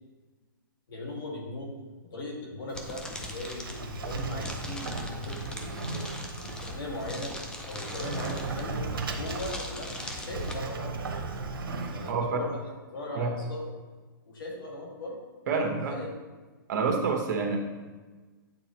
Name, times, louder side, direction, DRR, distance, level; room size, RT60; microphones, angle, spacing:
voice 1, 0.9-1.7 2.0-7.4 7.6-11.0 11.9-12.6 12.9-13.7 14.3-15.2 15.7-16.2, left 1 dB, 70° left, -1 dB, 1.9 m, -38 dB
sound 1, 2.7-10.6, left 1 dB, 5° left, 0.5 m, -41 dB
Sliding door, 2.7-12.1, right 3 dB, 80° right, 0.9 m, -37 dB
voice 2, 15.5-16.0 16.7-17.6, right 4 dB, 50° right, 2 dB, 1.2 m, -27 dB
8.8 x 4.2 x 3.0 m, 1.3 s
hypercardioid pair, 145°, 12 cm